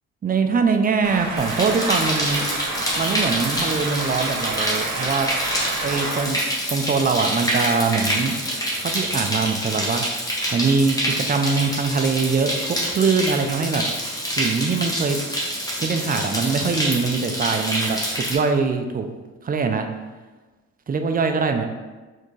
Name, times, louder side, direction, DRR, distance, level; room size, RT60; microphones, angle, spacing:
voice 1, 0.2-2.4 2.9-5.3 5.8-6.4 6.7-8.3 8.8-10.0 10.5-13.8 14.4-15.2 15.8-18.0 18.3-19.1 19.4-19.9 20.9-21.7, right 4 dB, 30° right, 5 dB, 0.5 m, -22 dB
sound 1, 1.0-6.3, right 3 dB, 70° right, 1.0 m, -29 dB
sound 2, 1.4-18.4, equal, 10° left, 1.2 m, -26 dB
4.3 x 3.6 x 3.2 m, 1.3 s
cardioid pair, 90°, 30 cm